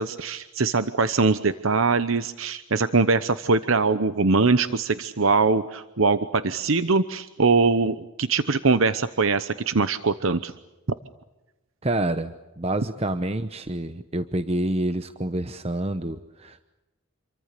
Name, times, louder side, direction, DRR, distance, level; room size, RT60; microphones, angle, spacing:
voice 1, 0.0-10.5, right 4 dB, 75° right, 12 dB, 0.9 m, -22 dB
voice 2, 11.8-16.7, right 1 dB, 30° right, 10 dB, 0.9 m, -28 dB
28.0 x 23.5 x 6.8 m, 1.0 s
head